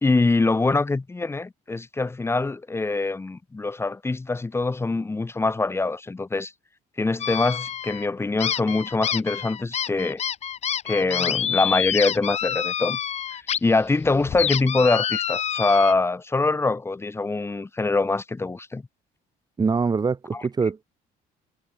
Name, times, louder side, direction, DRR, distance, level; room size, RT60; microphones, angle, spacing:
voice 1, 0.0-6.5 7.0-10.2 10.8-13.0 13.3-18.8 20.3-20.5, left 3 dB, 15° left, 1.0 m, -24 dB
sound 1, 7.2-8.1 8.4-13.6 13.9-15.9, left 9 dB, 40° left, 0.8 m, -27 dB
voice 2, 19.6-20.8, right 5 dB, 25° right, 1.2 m, -24 dB
cardioid pair, 110°, 17 cm